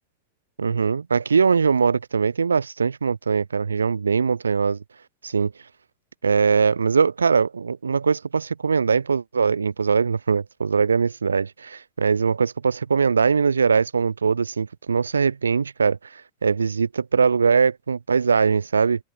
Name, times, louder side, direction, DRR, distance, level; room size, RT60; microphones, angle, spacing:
voice 1, 0.6-4.8 5.2-5.5 6.2-19.0, right 5 dB, 75° right, 7.6 m, -21 dB
open air
figure-of-eight pair, 90°, 0 cm